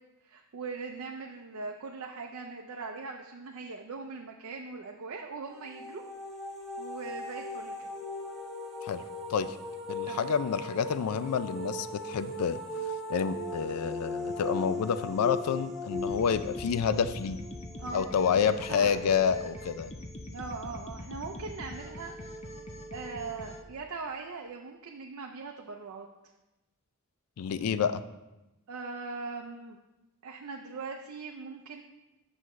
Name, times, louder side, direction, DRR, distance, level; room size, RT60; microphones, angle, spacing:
voice 1, 0.2-6.0 6.8-7.9 10.0-10.3 17.7-18.0 18.3-19.3 20.3-22.1 22.9-26.1 27.7-27.9 28.7-29.8 30.2-31.8, right 4 dB, 65° right, 2 dB, 0.5 m, -40 dB
sound 1, 5.5-18.3, left 1 dB, ahead, 1.0 m, -38 dB
voice 2, 9.9-12.6 13.1-17.4 17.9-19.9 27.4-28.0, left 7 dB, 85° left, 13 dB, 0.4 m, -28 dB
sound 2, 15.9-23.6, left 1 dB, 30° left, 0.6 m, -43 dB
7.7 x 6.3 x 3.1 m, 1.0 s
head